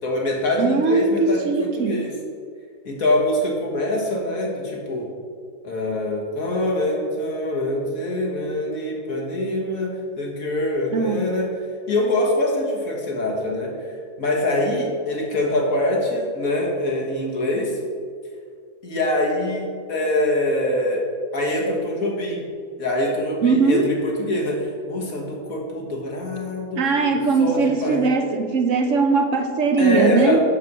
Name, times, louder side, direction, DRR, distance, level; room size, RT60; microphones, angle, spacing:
voice 1, 0.0-2.1 2.9-5.1 5.6-11.5 11.9-17.8 18.8-21.0 21.3-22.4 22.8-26.8 27.1-28.1 29.8-30.4, left 1 dB, 70° left, -1 dB, 2.0 m, -24 dB
voice 2, 0.6-2.0 10.9-11.2 23.4-23.9 26.8-30.4, right 4 dB, 65° right, 5 dB, 1.1 m, -20 dB
6.8 x 6.7 x 6.1 m, 2.1 s
omnidirectional pair, 1.5 m